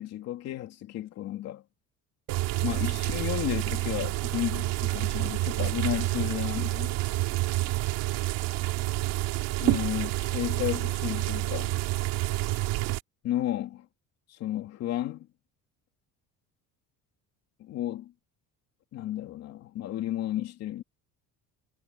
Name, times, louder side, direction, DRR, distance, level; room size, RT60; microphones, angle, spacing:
voice 1, 0.0-1.6 2.6-7.0 9.6-11.8 13.2-13.8 14.3-15.3 17.6-18.1 18.9-20.8, left 13 dB, 50° left, 2.9 m, -33 dB
sound 1, 2.3-13.0, right 18 dB, 90° right, 3.0 m, -28 dB
cardioid pair, 180°, 33 cm